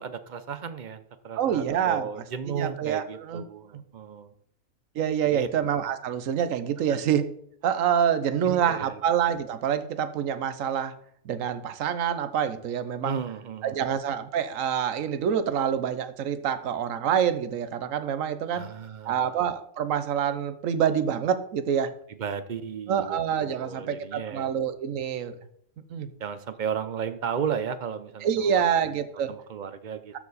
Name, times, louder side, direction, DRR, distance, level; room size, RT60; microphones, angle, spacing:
voice 1, 0.0-4.3 5.2-5.5 6.9-7.0 8.4-9.0 13.0-13.8 18.5-19.4 22.2-24.5 26.2-28.5 29.3-30.1, right 7 dB, 50° right, 11 dB, 0.6 m, -34 dB
voice 2, 1.4-2.1 2.5-3.4 3.7-3.8 5.0-7.2 7.6-10.9 11.2-13.2 13.6-18.6 19.1-21.9 22.9-25.4 25.9-26.1 28.2-29.3, right 8 dB, 80° right, 12 dB, 1.1 m, -26 dB
13.0 x 4.7 x 4.1 m, 0.67 s
omnidirectional pair, 1.4 m